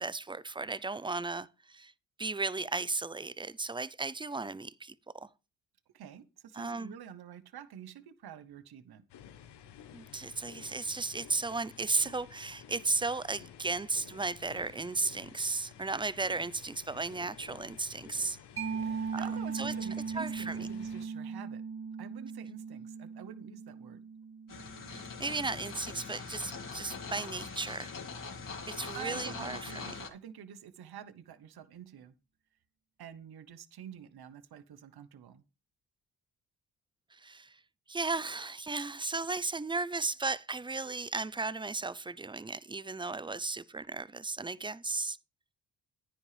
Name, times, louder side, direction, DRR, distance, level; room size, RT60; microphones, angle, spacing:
voice 1, 0.0-1.9 2.2-5.3 6.5-6.9 9.9-18.4 19.1-19.2 19.5-19.7 20.1-20.7 24.9-27.9 28.7-29.9 37.1-37.6 37.9-45.2, right 3 dB, 10° right, 0.5 m, -35 dB
voice 2, 5.9-9.0 18.8-21.6 22.0-24.1 28.9-32.1 33.0-35.4, right 9 dB, 65° right, 1.1 m, -48 dB
sound 1, 9.1-21.1, left 9 dB, 75° left, 1.2 m, -53 dB
Mallet percussion, 18.6-25.8, right 5 dB, 30° right, 2.6 m, -39 dB
sound 2, 24.5-30.1, left 4 dB, 50° left, 3.0 m, -42 dB
9.9 x 9.8 x 3.4 m
supercardioid pair, 60°, 41 cm